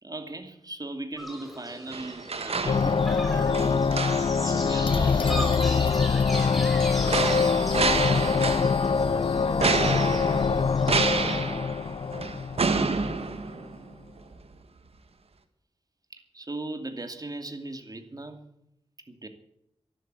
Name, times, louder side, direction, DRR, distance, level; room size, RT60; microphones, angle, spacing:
voice 1, 0.0-3.0 3.3-5.6 16.1-18.4 19.1-19.3, right 2 dB, 35° right, 7 dB, 2.5 m, -38 dB
sound 1, 1.2-11.4, equal, ahead, 5.4 m, -38 dB
sound 2, 1.9-3.2 3.5-4.5 6.3-9.0 9.6-13.9 14.3-14.4, right 4 dB, 70° right, 1.7 m, -29 dB
sound 3, 2.7-13.2, left 5 dB, 55° left, 0.5 m, -24 dB
13.0 x 12.0 x 8.2 m, 0.76 s
wide cardioid pair, 65°, 11 cm